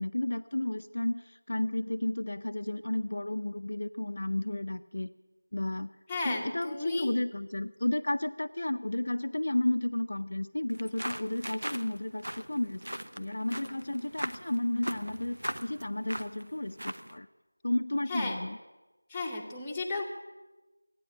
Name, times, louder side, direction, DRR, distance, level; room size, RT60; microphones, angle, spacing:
voice 1, 0.0-5.1 5.5-5.9 6.2-12.8 13.1-17.3 17.6-18.6, left 1 dB, 55° left, 8 dB, 0.6 m, -32 dB
voice 2, 6.1-7.1 18.1-18.4 19.1-20.0, left 3 dB, 5° left, -4 dB, 1.0 m, -34 dB
sound 1, 10.7-17.2, right 1 dB, 80° right, 0.9 m, -40 dB
14.5 x 9.6 x 10.0 m, 1.1 s
figure-of-eight pair, 175°, 0 cm